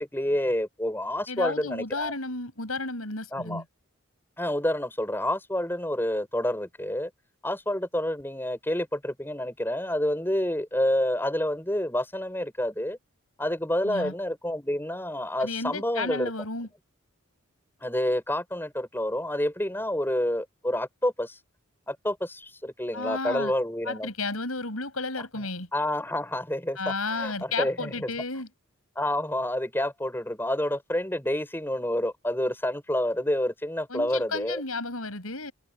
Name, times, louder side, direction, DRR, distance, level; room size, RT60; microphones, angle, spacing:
voice 1, 0.0-2.1 3.3-3.6 4.4-7.1 7.4-13.0 13.4-16.3 17.8-21.4 21.9-24.1 25.7-28.1 28.9-34.6, left 1 dB, 10° left, 6.6 m, -28 dB
voice 2, 1.3-3.6 13.8-14.1 15.4-16.7 22.9-23.5 23.9-25.7 26.8-28.5 33.9-35.5, left 3 dB, 80° left, 7.6 m, -32 dB
head